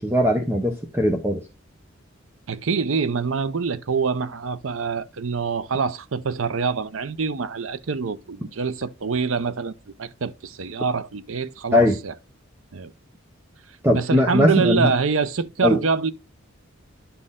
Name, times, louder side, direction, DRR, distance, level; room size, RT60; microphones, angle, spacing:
voice 1, 0.0-1.4 11.7-12.0 13.8-14.9 15.6-15.8, left 1 dB, 10° right, 0.8 m, -19 dB
voice 2, 2.5-9.7 10.0-12.1 12.7-12.9 13.9-16.1, right 5 dB, 75° right, 0.6 m, -25 dB
11.0 x 4.3 x 3.6 m
head